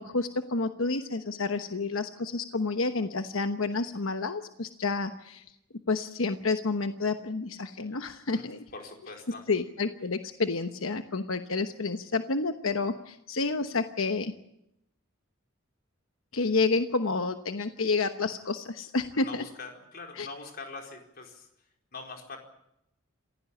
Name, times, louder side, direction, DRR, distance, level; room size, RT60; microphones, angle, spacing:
voice 1, 0.0-5.4 5.9-8.6 9.5-14.3 16.3-19.4 20.2-20.3, left 3 dB, 75° left, 8 dB, 1.1 m, -29 dB
voice 2, 8.7-9.4 16.4-16.5 19.1-21.5 21.9-22.4, left 3 dB, 45° left, 2 dB, 4.6 m, -43 dB
27.0 x 16.5 x 8.5 m, 0.80 s
head